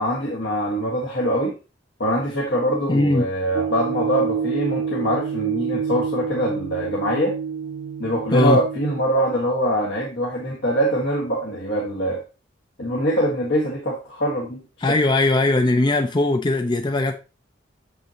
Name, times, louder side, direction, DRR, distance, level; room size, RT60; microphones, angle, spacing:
voice 1, 0.0-1.5 2.0-7.3 8.0-12.2 12.8-14.6, equal, 65° left, 1.5 m, -23 dB
voice 2, 2.9-3.3 8.3-8.6 14.8-17.1, left 2 dB, 25° left, 0.5 m, -19 dB
sound 1, 3.5-9.1, right 6 dB, 85° right, 0.7 m, -28 dB
6.9 x 5.6 x 2.9 m
head